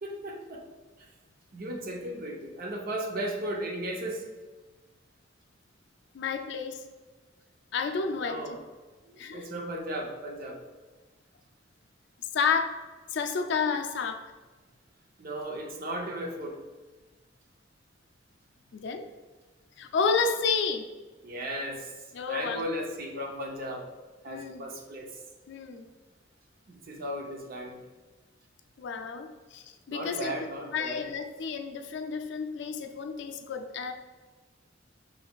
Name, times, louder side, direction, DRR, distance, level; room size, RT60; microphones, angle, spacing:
voice 1, 0.0-0.7 1.5-4.3 8.2-8.6 9.0-10.6 15.2-16.6 21.2-21.9 22.3-23.8 24.2-25.1 26.7-27.8 29.9-31.0, right 1 dB, 50° right, 1 dB, 0.6 m, -36 dB
voice 2, 6.1-6.8 7.7-8.4 9.2-9.4 12.3-12.8 13.1-14.2 18.7-19.1 19.8-20.9 22.1-22.6 24.3-24.7 25.5-25.8 28.8-33.9, left 5 dB, 65° left, 6 dB, 0.4 m, -31 dB
5.6 x 3.2 x 2.3 m, 1.3 s
head